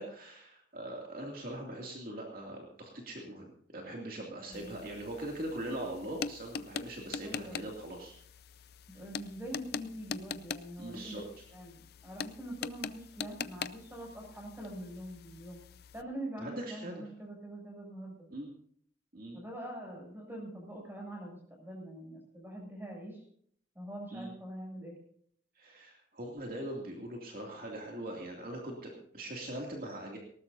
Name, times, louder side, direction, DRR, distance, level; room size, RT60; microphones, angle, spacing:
voice 1, 0.0-8.1 10.8-11.2 16.4-17.0 18.3-18.5 19.1-19.4 24.1-24.3 25.6-30.2, right 1 dB, 50° right, 0 dB, 2.6 m, -41 dB
sound 1, 4.5-16.0, left 6 dB, 55° left, 0.5 m, -43 dB
voice 2, 4.5-4.8 7.2-7.7 8.9-11.2 11.5-15.6 15.9-18.3 19.3-23.2 23.7-25.0, right 1 dB, 10° right, 0 dB, 7.4 m, -44 dB
19.5 x 18.5 x 2.7 m, 0.62 s
head